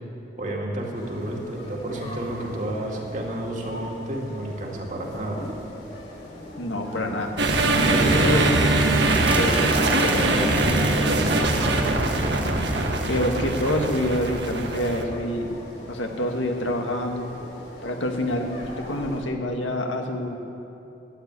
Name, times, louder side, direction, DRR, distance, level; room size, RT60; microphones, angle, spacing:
voice 1, 0.4-5.4 7.8-8.2 10.2-11.8, right 1 dB, 40° right, -1 dB, 2.3 m, -30 dB
sound 1, 0.9-19.2, left 1 dB, 55° left, 3.2 m, -40 dB
voice 2, 6.6-7.3 7.7-7.9 8.2-8.9 9.4-10.3 10.7-10.8 13.1-15.5 15.9-17.3 17.8-20.4, left 1 dB, 85° left, 3 dB, 1.8 m, -27 dB
sound 2, 7.4-15.0, right 2 dB, 65° right, 1.5 m, -22 dB
sound 3, 9.0-14.0, equal, 5° right, 1.0 m, -33 dB
13.0 x 10.0 x 9.7 m, 3.0 s
head